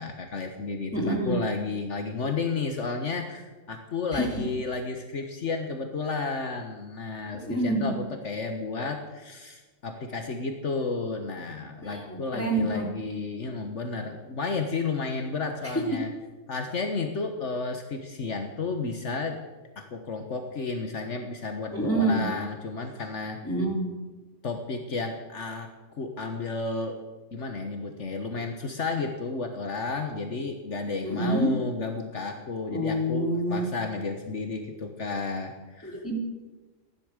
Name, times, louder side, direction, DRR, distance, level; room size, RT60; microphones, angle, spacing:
voice 1, 0.0-16.1 16.5-19.4 19.8-23.4 24.4-27.0 27.3-36.0, left 4 dB, 65° left, 5 dB, 1.6 m, -32 dB
voice 2, 0.9-1.4 4.1-4.4 7.3-7.9 11.8-12.9 15.6-15.8 21.7-22.3 23.4-23.9 31.0-31.5 32.7-33.7 35.8-36.2, right 1 dB, 10° left, -1 dB, 3.0 m, -27 dB
15.0 x 11.5 x 6.6 m, 1.2 s
omnidirectional pair, 1.3 m